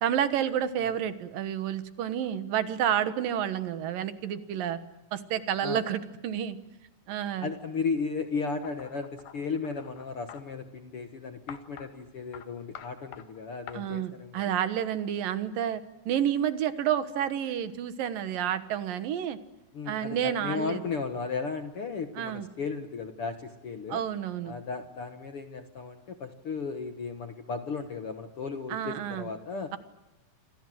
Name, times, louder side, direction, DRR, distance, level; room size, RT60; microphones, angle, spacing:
voice 1, 0.0-4.8 5.1-6.6 7.1-7.5 13.7-19.4 19.9-20.8 22.2-22.5 23.9-24.6 28.7-29.3, right 10 dB, 75° right, 11 dB, 3.0 m, -30 dB
voice 2, 7.4-14.4 19.7-24.0 24.4-29.7, left 5 dB, 55° left, 7 dB, 1.7 m, -35 dB
sound 1, 8.6-10.4 11.5-11.9 12.3-12.5 12.8-13.3 13.7-13.8, left 10 dB, 75° left, 3.4 m, -46 dB
28.5 x 26.5 x 7.8 m, 0.94 s
omnidirectional pair, 4.2 m